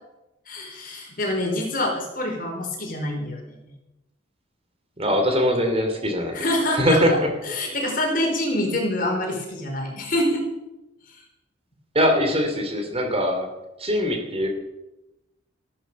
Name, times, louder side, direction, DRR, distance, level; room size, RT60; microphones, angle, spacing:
voice 1, 0.5-3.6 6.3-7.2 7.4-10.4, left 1 dB, 50° left, 1 dB, 4.8 m, -26 dB
voice 2, 5.0-6.4 6.7-7.3 11.9-13.5 13.8-14.5, equal, 30° right, 5 dB, 3.0 m, -22 dB
15.0 x 12.5 x 7.0 m, 0.96 s
head